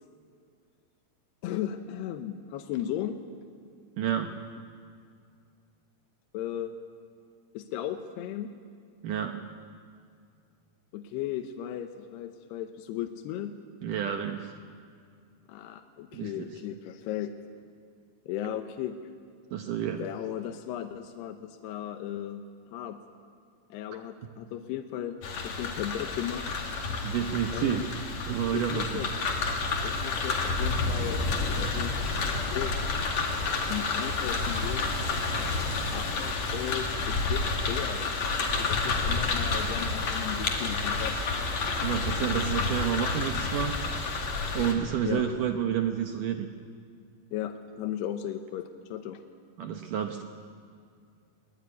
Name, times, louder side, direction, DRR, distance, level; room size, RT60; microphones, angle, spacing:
voice 1, 1.4-3.2 6.3-6.7 7.5-8.5 10.9-13.5 15.5-17.3 18.3-19.0 20.0-23.0 23.7-26.6 27.5-27.9 28.5-29.1 29.8-31.9 32.5-32.7 33.7-35.0 35.9-38.1 38.4-41.2 45.0-45.3 47.3-49.2, left 11 dB, 75° left, 6 dB, 2.9 m, -36 dB
voice 2, 4.0-4.4 9.0-9.4 13.8-14.5 16.1-16.3 19.5-20.1 27.0-27.8 28.3-28.8 41.8-43.9 44.5-46.5 49.6-50.2, right 9 dB, 75° right, 5 dB, 2.0 m, -29 dB
sound 1, 25.2-44.7, left 3 dB, 45° left, 3.1 m, -30 dB
22.5 x 20.0 x 9.6 m, 2.2 s
omnidirectional pair, 5.1 m